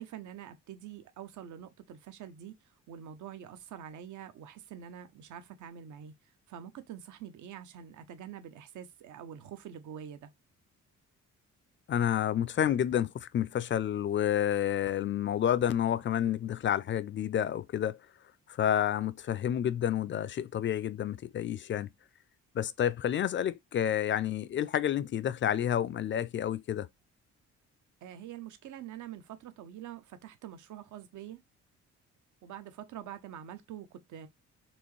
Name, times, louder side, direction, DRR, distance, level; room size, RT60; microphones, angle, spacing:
voice 1, 0.0-6.1 6.5-10.3 28.0-31.4 32.4-34.3, right 10 dB, 75° right, 0.9 m, -45 dB
voice 2, 11.9-18.0 18.6-21.9 22.5-26.9, left 10 dB, 40° left, 0.4 m, -29 dB
4.4 x 3.0 x 3.1 m
cardioid pair, 90°, 30 cm